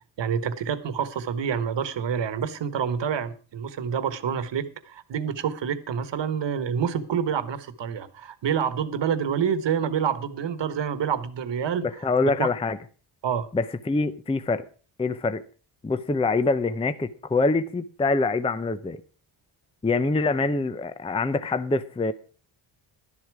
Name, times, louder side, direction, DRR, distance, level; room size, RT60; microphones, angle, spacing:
voice 1, 0.2-11.9 12.4-12.5 13.2-13.5, right 7 dB, 60° right, 1.4 m, -27 dB
voice 2, 12.0-12.8 13.5-14.6 15.0-15.4 15.8-19.0 19.8-22.1, left 3 dB, 10° left, 0.5 m, -25 dB
12.0 x 11.0 x 4.8 m
wide cardioid pair, 160°, 48 cm